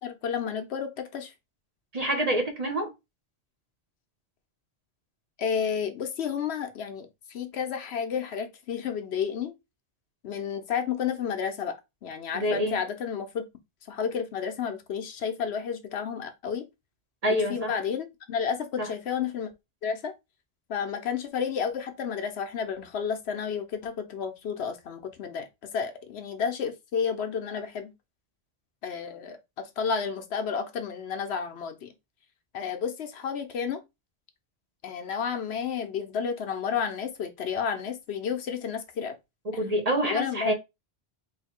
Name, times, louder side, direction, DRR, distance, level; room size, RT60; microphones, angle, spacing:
voice 1, 0.0-1.3 5.4-9.5 10.2-11.8 12.0-13.4 13.9-16.7 17.4-19.5 19.8-20.1 20.7-25.5 25.7-27.9 28.8-31.9 32.5-33.8 34.8-39.2 40.0-40.5, left 7 dB, 75° left, 1.0 m, -31 dB
voice 2, 1.9-2.9 12.3-12.8 17.2-17.8 18.8-18.9 39.6-40.5, equal, 40° right, 0.9 m, -27 dB
3.2 x 2.7 x 4.2 m
omnidirectional pair, 1.1 m